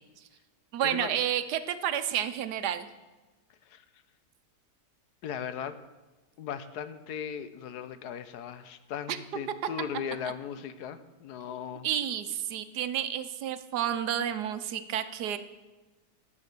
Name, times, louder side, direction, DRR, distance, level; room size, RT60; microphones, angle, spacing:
voice 1, 0.7-2.9 9.1-9.2 11.8-15.4, right 10 dB, 85° right, 11 dB, 1.3 m, -30 dB
voice 2, 5.2-5.8 6.4-11.9, left 8 dB, 80° left, 12 dB, 1.3 m, -38 dB
13.0 x 7.3 x 6.7 m, 1.2 s
omnidirectional pair, 1.7 m